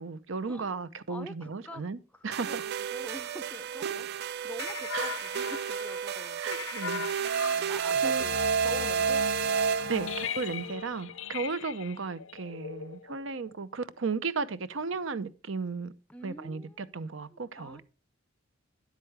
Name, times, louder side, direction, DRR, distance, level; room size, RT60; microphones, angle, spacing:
voice 1, 0.0-2.6 4.9-5.2 6.4-7.1 7.4-7.5 8.0-8.2 9.9-15.9 16.2-17.8, right 4 dB, 75° right, 0.7 m, -35 dB
voice 2, 1.1-1.8 2.1-6.4 7.2-9.2 16.1-16.9 17.3-17.8, left 1 dB, 5° left, 0.5 m, -46 dB
sound 1, 2.3-10.4, right 7 dB, 55° right, 0.3 m, -31 dB
sound 2, 4.6-13.5, left 6 dB, 80° left, 0.6 m, -38 dB
10.0 x 8.3 x 3.3 m
head